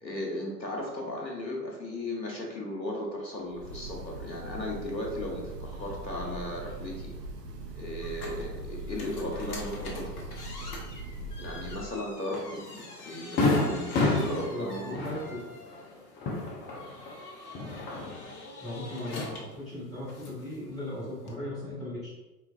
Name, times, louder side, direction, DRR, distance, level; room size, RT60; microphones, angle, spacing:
voice 1, 0.0-7.1 7.8-10.1 11.4-15.1, left 1 dB, 90° left, -1 dB, 1.3 m, -36 dB
Breathing / Bird, 3.4-12.0, right 2 dB, 70° right, 0.9 m, -40 dB
sound 1, 8.0-21.4, left 2 dB, 60° left, 1.2 m, -45 dB
Fireworks, 12.3-12.5 12.9-13.0 13.4-17.1 17.5-18.3, left 2 dB, 20° left, 0.8 m, -29 dB
voice 2, 14.1-15.4 18.6-22.1, left 1 dB, ahead, -13 dB, 0.3 m, -37 dB
5.0 x 3.4 x 2.5 m, 1.1 s
figure-of-eight pair, 100°, 49 cm